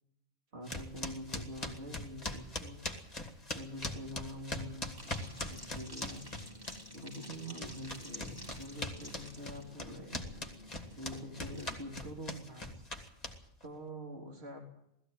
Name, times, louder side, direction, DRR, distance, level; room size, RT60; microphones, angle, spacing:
voice 1, 0.5-2.8 3.5-6.3 6.9-10.2 11.0-12.9 13.6-14.6, equal, 45° right, 1 dB, 3.6 m, -45 dB
sound 1, 0.7-7.0 7.3-13.6, left 2 dB, 25° left, 2.5 m, -41 dB
sound 2, 5.0-11.7, left 1 dB, 15° right, 4.9 m, -50 dB
19.5 x 14.5 x 9.3 m, 0.78 s
omnidirectional pair, 1.5 m